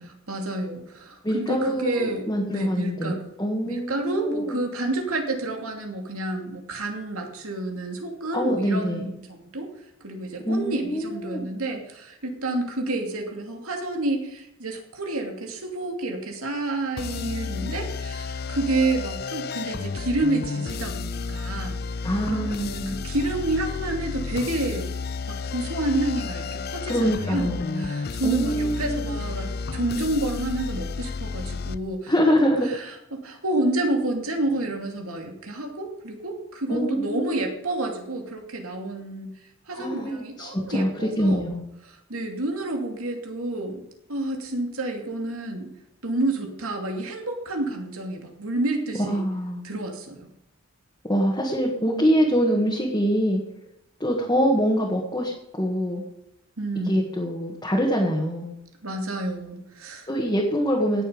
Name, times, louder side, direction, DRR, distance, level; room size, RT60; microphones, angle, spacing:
voice 1, 0.0-3.3 3.7-9.7 10.0-21.8 22.3-24.9 25.3-32.4 32.7-39.3 39.7-41.5 41.8-43.8 44.1-45.7 46.0-49.2 49.6-50.3 56.6-57.1 58.8-60.1, right 2 dB, 85° right, 3 dB, 2.7 m, -29 dB
voice 2, 1.2-4.6 8.3-9.1 10.5-11.5 22.0-23.0 26.9-27.9 28.2-29.1 32.1-32.7 36.7-37.4 39.8-40.9 41.2-41.7 49.1-49.6 51.1-53.4 54.0-56.0 56.8-58.5 60.1-61.0, equal, 20° left, -3 dB, 1.8 m, -24 dB
sound 1, 17.0-31.8, left 4 dB, 45° left, 0.5 m, -32 dB
18.0 x 7.2 x 5.2 m, 0.84 s
head